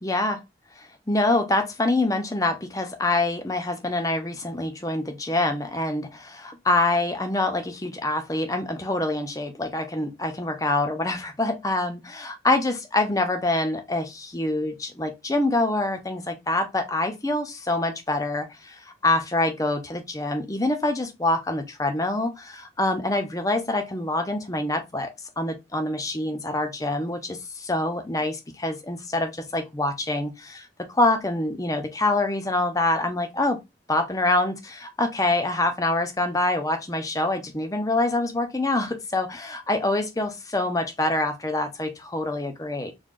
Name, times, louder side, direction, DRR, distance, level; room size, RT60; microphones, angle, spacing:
voice 1, 0.0-0.4 1.1-33.6 33.9-42.9, left 2 dB, 20° left, 0.6 m, -25 dB
3.9 x 3.3 x 2.4 m
head